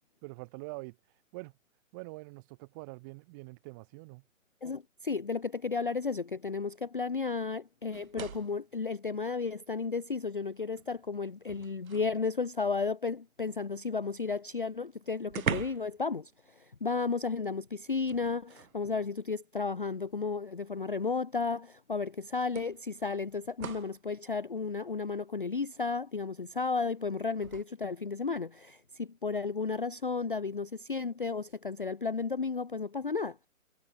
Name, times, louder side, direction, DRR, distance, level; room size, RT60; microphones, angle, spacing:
voice 1, 0.2-1.0 1.3-1.5 1.9-4.2, right 27 dB, 15° right, 1.6 m, -44 dB
voice 2, 4.6-16.3 16.6-33.4, left 4 dB, 40° left, 0.4 m, -33 dB
sound 1, 7.9-8.7 10.0-10.1 10.6-12.2 14.3-14.4 14.6-14.7 15.3-16.0 16.3-16.5 18.0-18.8 19.9-20.0 21.6-21.7 22.5-24.0 27.4-27.6, right 7 dB, 75° right, 1.2 m, -40 dB
hypercardioid pair, 165°, 42 cm